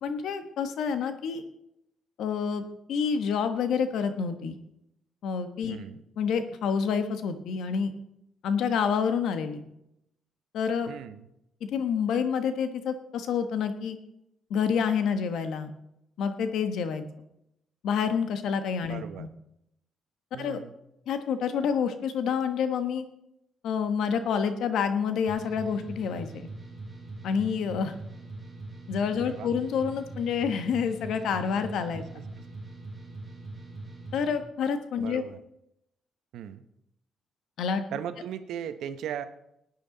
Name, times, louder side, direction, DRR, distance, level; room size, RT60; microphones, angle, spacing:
voice 1, 0.0-1.4 2.2-4.6 5.2-5.8 6.2-7.9 8.4-9.7 10.5-10.9 11.7-14.0 14.5-15.7 16.2-17.0 17.8-19.3 20.4-20.6 21.1-23.0 23.6-26.5 27.2-27.9 28.9-32.0 34.1-35.2 37.6-37.8, left 6 dB, 75° left, 8 dB, 1.2 m, -28 dB
voice 2, 5.6-6.0 10.9-11.3 18.9-19.3 20.3-20.8 29.1-29.5 32.1-32.5 35.0-35.4 36.3-36.6 37.9-39.3, right 9 dB, 80° right, 11 dB, 0.9 m, -38 dB
sound 1, 25.3-34.4, right 2 dB, 5° right, 4.5 m, -42 dB
17.0 x 9.3 x 3.9 m, 0.81 s
cardioid pair, 90°, 0 cm